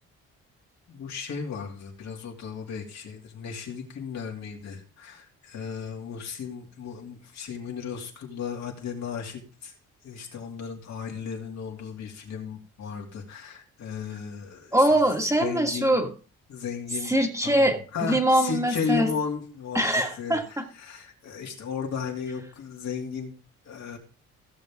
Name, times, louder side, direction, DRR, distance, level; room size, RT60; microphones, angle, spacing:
voice 1, 0.9-9.7 10.0-15.0 15.4-16.0 16.5-17.1 17.4-19.8 20.2-23.3 23.6-24.0, left 6 dB, 65° left, 1 dB, 2.9 m, -35 dB
voice 2, 14.7-16.1 17.1-19.1 19.7-20.4, right 1 dB, 10° right, 3 dB, 1.9 m, -22 dB
16.0 x 6.9 x 3.7 m, 0.38 s
cardioid pair, 90°, 30 cm